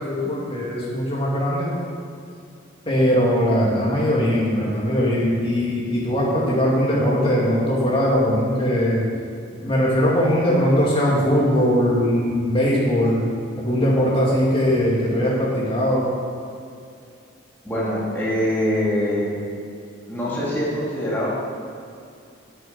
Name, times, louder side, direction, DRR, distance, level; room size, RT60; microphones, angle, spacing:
voice 1, 0.0-1.7 2.8-9.0 9.6-13.2 13.6-16.1, equal, 25° left, -5 dB, 2.7 m, -20 dB
voice 2, 17.6-19.3 20.1-21.3, equal, 10° left, -8 dB, 2.6 m, -23 dB
8.6 x 7.2 x 8.9 m, 2.4 s
head